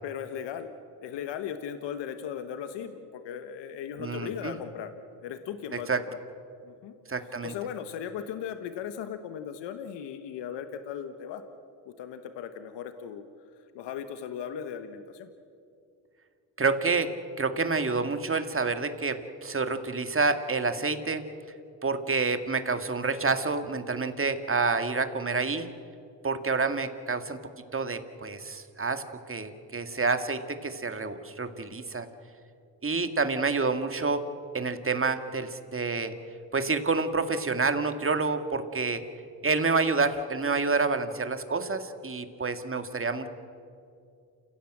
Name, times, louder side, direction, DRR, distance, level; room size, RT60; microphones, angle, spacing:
voice 1, 0.0-0.7 1.0-4.9 5.2-6.2 6.6-6.9 7.4-11.4 11.8-13.3 13.7-15.3, left 8 dB, 85° left, 9 dB, 1.2 m, -37 dB
voice 2, 4.0-4.6 5.9-6.0 7.1-7.5 16.6-17.1 17.4-21.2 21.8-25.7 26.2-27.4 27.7-29.0 29.3-32.1 32.8-34.2 34.5-36.1 36.5-39.0 39.4-43.3, right 4 dB, 30° right, 8 dB, 2.1 m, -28 dB
28.5 x 16.0 x 7.8 m, 2.4 s
supercardioid pair, 55°, 42 cm